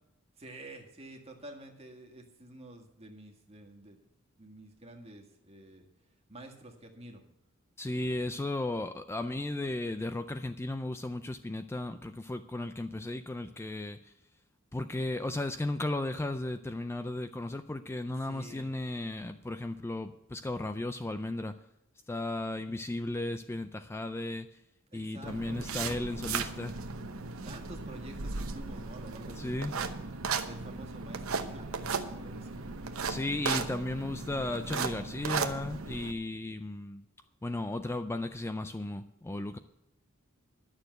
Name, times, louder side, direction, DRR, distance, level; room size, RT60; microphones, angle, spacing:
voice 1, 0.4-4.0 4.4-5.9 6.3-7.2 18.2-18.7 24.9-25.7 27.4-29.9 30.4-32.7, right 1 dB, 30° right, 2 dB, 1.8 m, -49 dB
voice 2, 7.8-14.1 14.7-21.6 22.1-24.5 24.9-26.8 29.4-29.8 33.1-37.0 37.4-39.6, left 2 dB, 10° left, 10 dB, 0.4 m, -35 dB
sound 1, 25.3-36.1, right 5 dB, 85° right, 0.9 m, -36 dB
11.5 x 6.8 x 7.9 m, 0.87 s
head